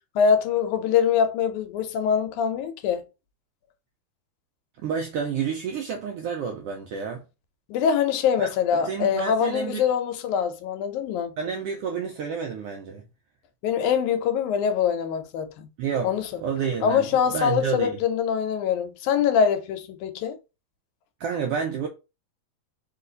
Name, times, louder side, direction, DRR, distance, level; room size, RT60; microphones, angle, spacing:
voice 1, 0.2-3.0 7.7-11.3 13.6-15.7 16.0-16.4 16.8-20.4, left 7 dB, 90° left, 2.2 m, -24 dB
voice 2, 4.8-7.2 8.4-9.8 11.4-13.0 15.8-16.1 16.4-18.0 21.2-21.9, right 6 dB, 90° right, 1.3 m, -29 dB
4.6 x 2.5 x 3.9 m
omnidirectional pair, 3.3 m